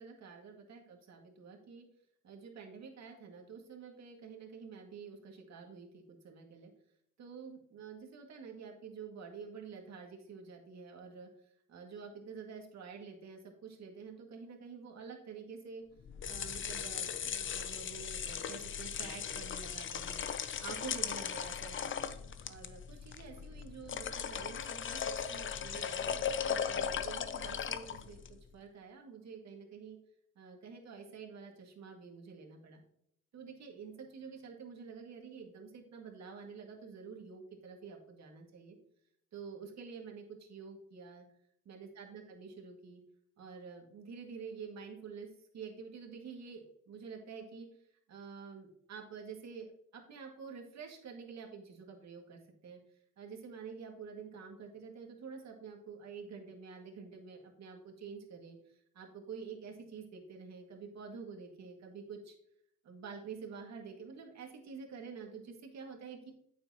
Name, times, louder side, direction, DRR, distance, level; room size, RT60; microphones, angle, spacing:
voice 1, 0.0-1.9 2.2-6.7 7.2-11.3 11.7-15.8 16.2-20.2 20.6-22.1 22.4-26.3 26.6-30.0 30.4-32.8 33.3-38.8 39.3-41.2 41.7-43.0 43.4-45.3 45.5-47.7 48.1-49.7 49.9-52.8 53.2-62.4 62.8-66.3, right 5 dB, 65° right, 2 dB, 2.1 m, -48 dB
sound 1, 16.0-28.4, left 7 dB, 40° left, 0.6 m, -38 dB
8.7 x 6.9 x 2.9 m, 0.71 s
cardioid pair, 90°, 30 cm